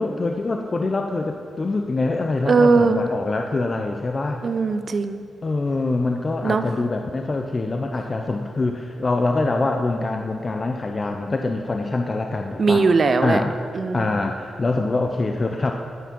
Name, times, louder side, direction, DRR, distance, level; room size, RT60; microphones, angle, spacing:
voice 1, 0.0-4.4 5.4-12.9 13.2-13.5 13.9-15.7, left 3 dB, 30° left, 4 dB, 0.4 m, -24 dB
voice 2, 2.5-3.1 4.4-5.2 6.4-6.6 12.6-13.4 13.7-14.1, right 4 dB, 40° right, 10 dB, 0.5 m, -19 dB
9.2 x 8.3 x 5.9 m, 2.5 s
wide cardioid pair, 155°, 0 cm